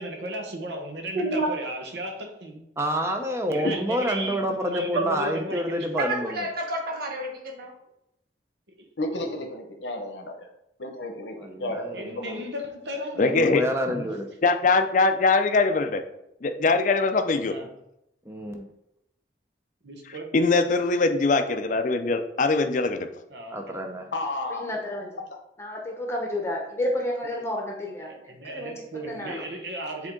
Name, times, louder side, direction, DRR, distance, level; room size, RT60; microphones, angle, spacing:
voice 1, 0.0-2.7 3.5-6.0 8.8-8.9 11.9-13.3 13.9-14.1 17.5-17.7 19.8-20.4 23.3-23.8 28.0-30.1, right 1 dB, 75° right, 1.1 m, -36 dB
voice 2, 1.1-1.5 4.9-5.2 6.0-7.7, right 2 dB, 55° right, 1.3 m, -28 dB
voice 3, 2.8-6.4 11.4-12.2 13.2-14.3 18.3-18.7 23.5-24.1, equal, 15° right, 0.6 m, -28 dB
voice 4, 9.0-10.5 10.8-12.4 13.4-13.6 24.1-24.7, left 1 dB, 85° left, 0.9 m, -32 dB
voice 5, 13.2-13.6 13.9-14.0 14.4-16.0 16.4-17.6 20.3-23.1, left 3 dB, 45° left, 0.5 m, -22 dB
voice 6, 24.5-25.2 25.6-29.4, left 1 dB, 15° left, 0.9 m, -31 dB
7.4 x 3.7 x 3.8 m
head